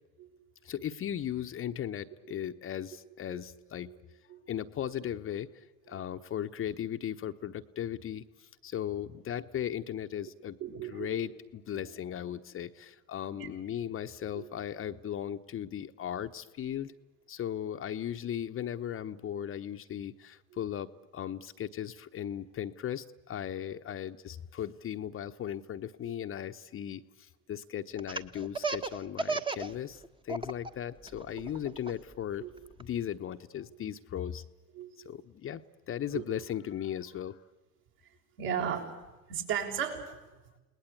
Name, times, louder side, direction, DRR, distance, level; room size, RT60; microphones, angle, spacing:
voice 1, 0.6-4.0 4.5-10.6 10.9-16.9 17.3-32.4 32.8-34.4 35.0-37.4, left 10 dB, 30° left, 7 dB, 1.0 m, -37 dB
voice 2, 10.6-11.2 11.8-11.9 13.3-13.5 14.3-14.5 20.5-20.6 31.3-31.5 32.4-32.5 33.7-33.8 34.7-35.0 36.1-36.2 38.4-38.9 39.3-40.2, right 8 dB, 60° right, 1 dB, 6.3 m, -36 dB
Laughter, 28.0-29.7 30.0-30.7 31.1-32.8, right 3 dB, 10° right, 1.2 m, -33 dB
30.0 x 19.5 x 8.5 m, 1.1 s
hypercardioid pair, 85°, 44 cm